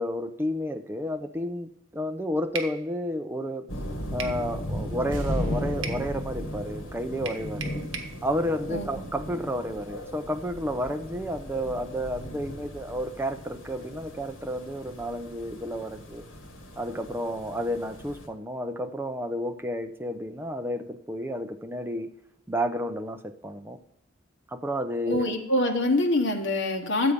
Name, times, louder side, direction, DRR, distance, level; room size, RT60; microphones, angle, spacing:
voice 1, 0.0-3.7 4.1-7.8 8.2-16.2 16.8-22.1 22.5-23.8 24.5-25.4, equal, 10° right, 6 dB, 0.5 m, -31 dB
sound 1, 2.6-2.8 4.2-4.4 5.8-6.1 7.3-8.2, right 5 dB, 75° right, 1.1 m, -36 dB
sound 2, 3.7-18.3, equal, 80° left, 1.6 m, -37 dB
sound 3, 5.1-8.3 8.6-8.7, equal, 40° right, 2.8 m, -37 dB
voice 2, 8.7-9.0 25.1-27.1, left 2 dB, 60° left, 2 dB, 1.3 m, -25 dB
11.0 x 8.2 x 5.2 m, 0.80 s
head